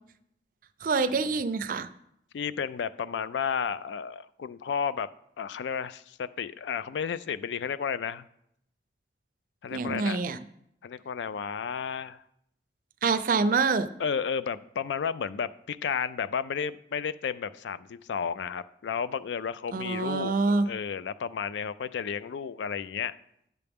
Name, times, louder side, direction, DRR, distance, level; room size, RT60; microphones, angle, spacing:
voice 1, 0.8-1.9 9.7-10.4 13.0-13.9 19.7-20.7, right 4 dB, 50° right, 12 dB, 0.4 m, -26 dB
voice 2, 2.3-5.1 5.4-8.3 9.6-10.2 10.8-12.2 14.0-23.1, left 6 dB, 80° left, 15 dB, 0.4 m, -32 dB
9.3 x 6.8 x 3.5 m, 0.75 s
head